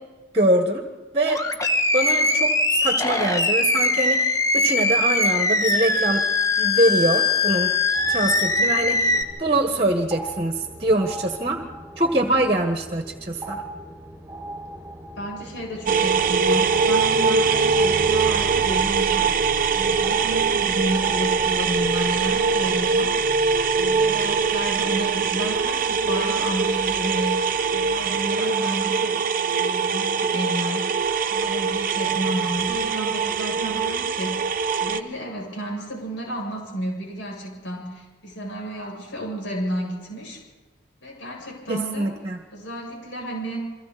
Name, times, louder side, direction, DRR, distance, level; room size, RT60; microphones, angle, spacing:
voice 1, 0.3-0.8 1.1-1.4 1.9-6.2 6.6-7.7 8.1-11.6 12.0-13.6 41.7-42.4, right 1 dB, 30° right, 4 dB, 1.6 m, -23 dB
Animal, 1.2-9.2, left 2 dB, 20° left, 1.3 m, -21 dB
sound 1, 7.9-22.4, right 1 dB, 15° right, 7.1 m, -39 dB
voice 2, 15.2-19.4 19.7-23.2 23.7-29.2 29.6-30.9 31.3-40.4 41.0-42.1 42.5-43.7, right 1 dB, 75° left, -1 dB, 7.8 m, -31 dB
sound 2, 15.9-35.0, right 5 dB, 45° right, 0.8 m, -22 dB
29.5 x 23.5 x 4.3 m, 1.2 s
head